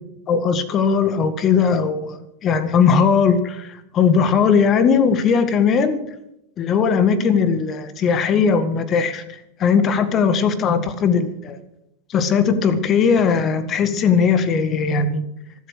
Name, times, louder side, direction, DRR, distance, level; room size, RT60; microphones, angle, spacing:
voice 1, 0.3-6.0 6.6-11.6 12.1-15.2, left 6 dB, 30° left, 12 dB, 1.8 m, -18 dB
24.5 x 8.3 x 6.5 m, 0.80 s
figure-of-eight pair, 90°, 0 cm